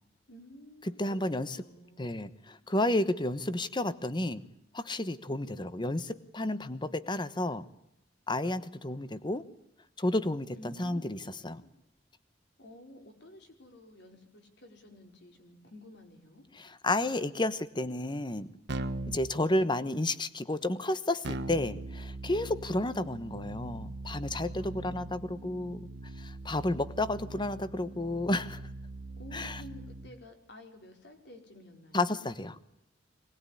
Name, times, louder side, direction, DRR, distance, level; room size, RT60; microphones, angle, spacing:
voice 1, 0.3-2.1 10.5-11.7 12.6-16.5 24.6-25.4 29.2-32.1, left 1 dB, 65° left, 4 dB, 5.0 m, -52 dB
voice 2, 0.9-1.6 2.0-4.4 4.7-7.6 8.3-9.4 10.0-11.6 16.5-18.5 19.1-25.9 26.2-28.6 29.3-29.6 31.9-32.6, left 1 dB, 25° left, 14 dB, 1.2 m, -31 dB
Keyboard (musical), 18.7-19.3 21.2-30.1, right 2 dB, 65° right, 1.4 m, -41 dB
23.5 x 20.0 x 10.0 m, 0.83 s
head